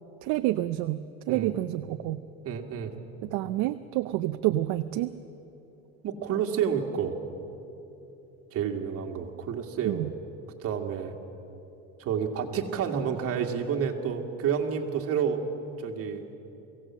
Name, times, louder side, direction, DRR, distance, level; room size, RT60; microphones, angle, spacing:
voice 1, 0.2-2.2 3.2-5.1 9.9-10.1, right 15 dB, 70° right, 10 dB, 0.6 m, -28 dB
voice 2, 2.4-2.9 6.0-7.2 8.5-10.1 10.6-11.1 12.0-15.4 15.8-16.2, right 7 dB, 50° right, 3 dB, 2.1 m, -29 dB
23.0 x 17.0 x 7.5 m, 2.9 s
cardioid pair, 130°, 30 cm